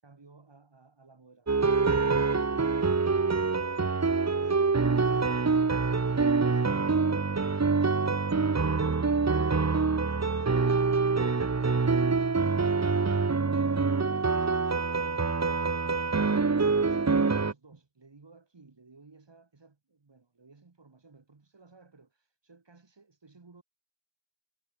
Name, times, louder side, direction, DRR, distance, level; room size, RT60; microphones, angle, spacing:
voice 1, 0.0-5.4 7.7-9.6 15.0-16.3 16.6-23.6, right 3 dB, 80° right, 7.6 m, -56 dB
sound 1, 1.5-17.5, right 4 dB, 40° right, 1.0 m, -25 dB
wide cardioid pair, 65°, 42 cm